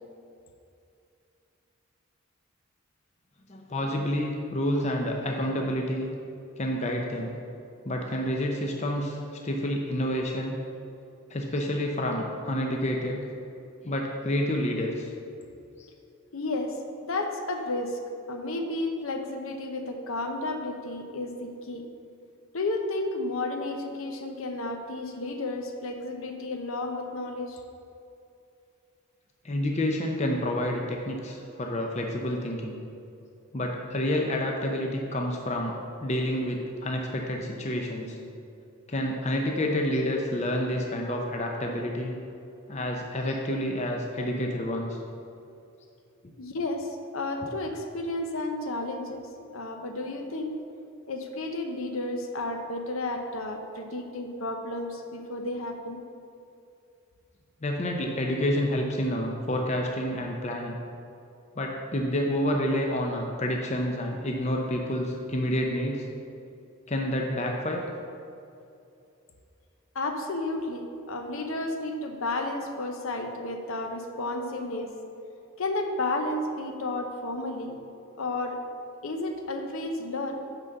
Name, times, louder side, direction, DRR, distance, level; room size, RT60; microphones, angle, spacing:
voice 1, 3.5-6.1 6.6-7.4 7.8-9.2 9.4-10.6 11.3-13.2 13.8-15.1 29.4-32.8 33.5-38.2 38.9-42.2 42.7-45.0 57.6-60.8 61.6-66.1 66.9-67.9, left 1 dB, 30° left, 1 dB, 0.6 m, -29 dB
voice 2, 16.3-16.8 17.0-18.0 18.3-21.9 22.5-27.6 46.4-49.3 49.5-50.5 51.1-56.0 69.9-74.9 75.6-77.8 78.2-78.6 79.0-80.4, left 2 dB, 70° left, 4 dB, 0.8 m, -32 dB
6.0 x 5.3 x 6.7 m, 2.6 s
head